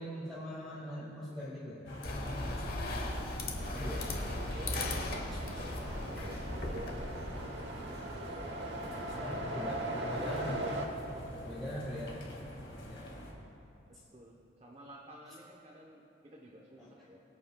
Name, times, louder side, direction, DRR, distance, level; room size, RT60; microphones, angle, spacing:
voice 1, 0.0-1.8 3.8-4.1 9.1-10.7 11.5-12.2 12.8-13.1 16.8-16.9, equal, ahead, -11 dB, 1.8 m, -41 dB
sound 1, 1.8-13.3, left 1 dB, 70° left, 2.1 m, -44 dB
sound 2, 2.0-7.4, left 2 dB, 50° left, 1.0 m, -38 dB
voice 2, 2.2-3.6 4.3-5.5 5.9-8.0 8.8-9.3 11.1-11.6 14.1-17.2, right 1 dB, 30° right, -2 dB, 0.8 m, -55 dB
sound 3, 3.6-10.9, right 1 dB, 60° right, 1.1 m, -40 dB
22.5 x 8.3 x 2.3 m, 2.9 s
head